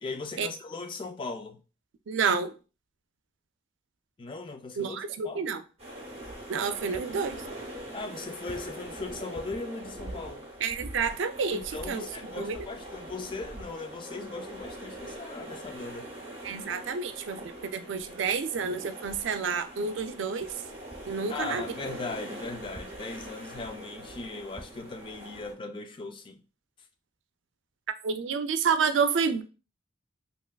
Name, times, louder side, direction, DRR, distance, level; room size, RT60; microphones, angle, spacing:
voice 1, 0.0-1.6 4.2-5.0 5.2-5.6 6.9-7.0 7.9-10.5 11.5-16.1 21.3-26.4, left 3 dB, 25° left, 0.3 m, -38 dB
voice 2, 2.1-2.5 4.8-5.6 6.5-7.4 10.6-12.1 12.4-12.6 16.4-20.5 21.1-21.6 28.0-29.4, right 5 dB, 85° right, 0.4 m, -29 dB
sound 1, 5.8-25.5, right 1 dB, 35° right, 0.7 m, -43 dB
3.2 x 2.9 x 2.2 m
head